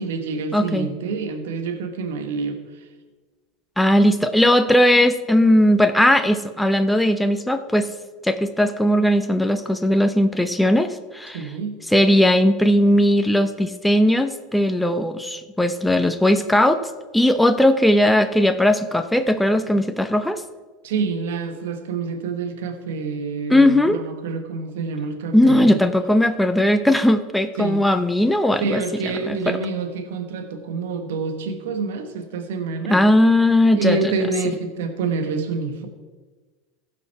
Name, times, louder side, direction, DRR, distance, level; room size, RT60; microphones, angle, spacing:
voice 1, 0.0-2.9 11.3-11.7 20.8-25.8 27.6-27.9 28.6-33.0 33.7-35.9, right 4 dB, 80° right, 6 dB, 1.3 m, -27 dB
voice 2, 0.5-0.9 3.8-7.9 8.2-11.4 11.9-20.4 23.5-24.0 25.3-29.6 32.9-34.1, left 1 dB, 5° left, 9 dB, 0.7 m, -18 dB
15.5 x 5.9 x 4.7 m, 1.3 s
hypercardioid pair, 100°, 0 cm